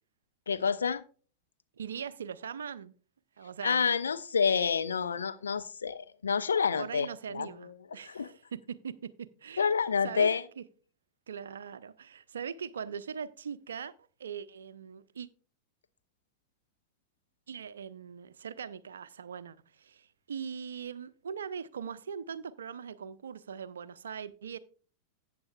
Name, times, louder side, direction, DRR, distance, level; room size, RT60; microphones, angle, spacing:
voice 1, 0.5-1.0 3.6-7.1 7.3-7.7 8.1-8.3 9.6-10.4, left 6 dB, 70° left, 0.5 m, -28 dB
voice 2, 1.8-2.9 3.4-3.9 6.8-9.7 10.0-10.3 10.6-10.7 11.3-13.9 14.2-15.3 17.5-24.6, right 7 dB, 65° right, 0.5 m, -41 dB
14.0 x 8.5 x 2.4 m
figure-of-eight pair, 90°, 0 cm